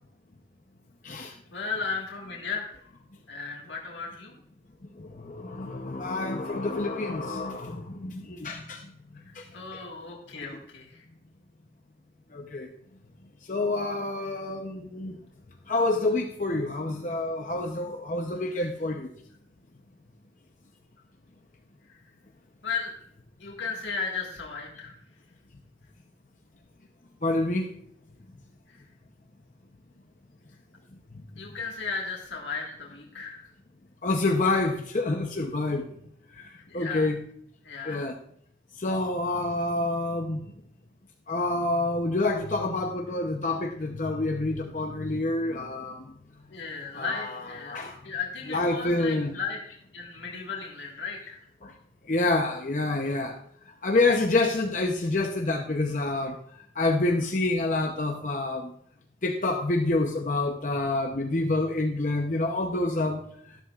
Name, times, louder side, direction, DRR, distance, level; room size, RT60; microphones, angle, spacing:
voice 1, 1.1-2.8 3.3-4.3 9.2-11.0 21.9-22.0 22.6-23.0 23.4-25.0 28.7-28.8 31.4-33.5 36.5-37.1 37.6-38.1 46.5-49.6 49.9-51.4, left 5 dB, 90° left, -2 dB, 1.8 m, -35 dB
voice 2, 5.0-8.9 9.3-9.4 12.3-12.7 13.5-15.2 15.7-19.1 27.2-27.7 34.0-35.8 36.7-37.2 37.9-38.1 38.8-40.4 41.3-46.0 46.9-48.0 48.5-49.3 51.6-51.7 52.1-53.4 53.8-56.4 56.8-58.7 59.2-63.2, left 2 dB, 45° left, 3 dB, 0.7 m, -27 dB
13.0 x 11.5 x 2.4 m, 0.70 s
head